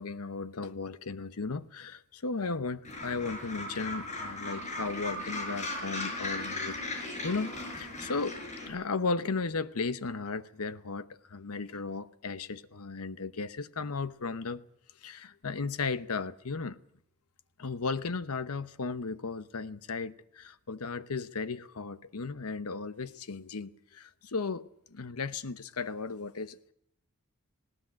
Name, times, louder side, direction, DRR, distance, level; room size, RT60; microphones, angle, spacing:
voice 1, 0.0-8.4 8.6-14.6 15.0-16.8 17.6-26.7, left 4 dB, 85° left, 0.9 m, -35 dB
Gull seagull, 2.8-8.7, left 2 dB, 35° left, 6.0 m, -37 dB
19.5 x 18.0 x 8.6 m
head